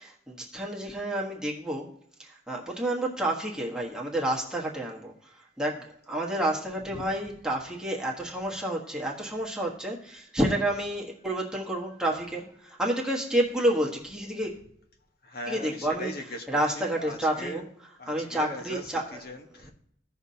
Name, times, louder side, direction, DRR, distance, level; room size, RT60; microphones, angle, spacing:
voice 1, 0.0-1.9 2.2-14.6 15.5-16.1 16.5-17.6 18.1-19.2, right 1 dB, 5° right, -3 dB, 1.2 m, -29 dB
voice 2, 6.8-7.1 15.2-17.7 18.0-19.7, left 1 dB, 55° left, 3 dB, 1.2 m, -40 dB
15.5 x 5.9 x 2.8 m, 0.70 s
head